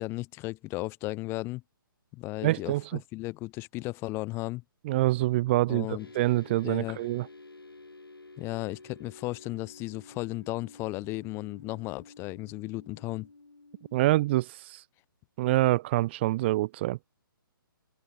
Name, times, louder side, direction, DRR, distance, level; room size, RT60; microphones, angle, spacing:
voice 1, 0.0-1.6 2.1-4.6 5.7-6.1 6.6-7.0 8.4-13.3, left 20 dB, 20° left, 1.8 m, -35 dB
voice 2, 2.4-2.8 4.8-7.3 13.9-14.8 15.4-17.0, right 17 dB, 30° right, 0.8 m, -26 dB
sound 1, 6.0-14.2, left 3 dB, 75° left, 4.8 m, -51 dB
open air
figure-of-eight pair, 135°, 12 cm